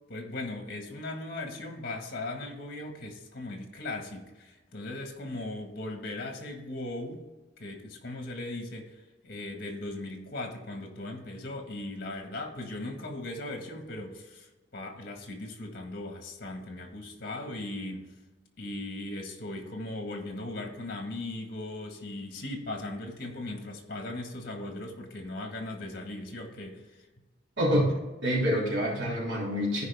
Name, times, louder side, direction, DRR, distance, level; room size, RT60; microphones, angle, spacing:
voice 1, 0.1-7.2 7.6-18.1 18.6-27.1, left 2 dB, 55° left, 3 dB, 1.8 m, -38 dB
voice 2, 27.6-27.9 28.2-29.8, equal, 75° right, -3 dB, 3.3 m, -26 dB
14.5 x 5.1 x 3.6 m, 1.2 s
head